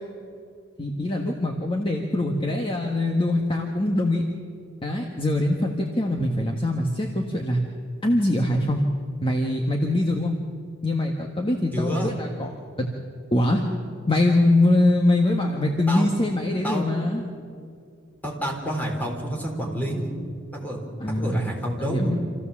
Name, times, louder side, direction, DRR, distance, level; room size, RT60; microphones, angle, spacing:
voice 1, 0.8-4.3 4.8-7.6 8.0-8.9 9.2-10.4 10.8-12.5 12.8-12.9 13.3-13.6 14.1-17.2 21.0-21.4 21.8-22.2, left 1 dB, 25° left, 1 dB, 1.4 m, -23 dB
voice 2, 11.7-12.1 15.9-16.0 16.6-16.9 18.2-20.2 20.5-20.8 21.2-22.1, equal, 10° left, -1 dB, 3.9 m, -29 dB
27.0 x 15.0 x 7.3 m, 2.3 s
head